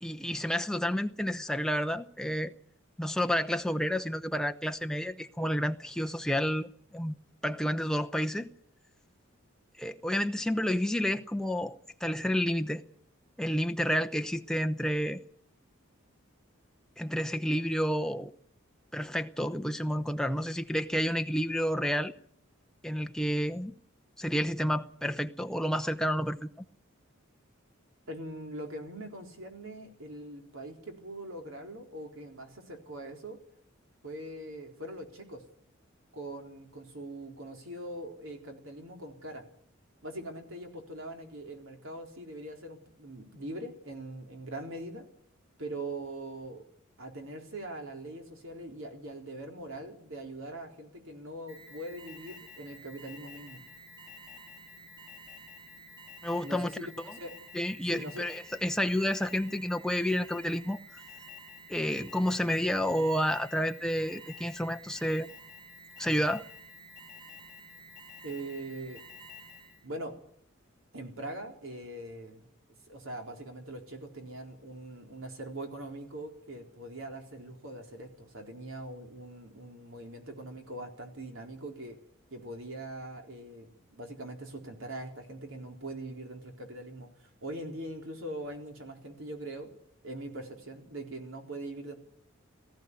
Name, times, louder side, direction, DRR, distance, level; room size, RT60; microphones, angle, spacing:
voice 1, 0.0-2.5 3.0-7.2 7.4-8.5 9.8-12.8 13.4-15.2 17.0-18.3 18.9-22.1 22.8-23.8 24.2-26.5 56.2-56.7 57.1-57.2 57.5-60.8 61.7-65.3 66.0-66.4, equal, 5° left, 0.7 m, -30 dB
voice 2, 28.1-33.4 34.0-35.4 36.1-39.4 40.0-45.1 45.6-46.6 47.0-53.6 56.4-56.9 57.1-57.4 57.8-58.2 68.2-69.0 69.8-70.2 70.9-72.5 72.9-82.0 82.3-89.7 90.0-92.0, right 1 dB, 70° right, 4.0 m, -42 dB
Alarm, 51.5-69.9, left 1 dB, 20° right, 4.3 m, -50 dB
18.5 x 14.5 x 9.7 m
head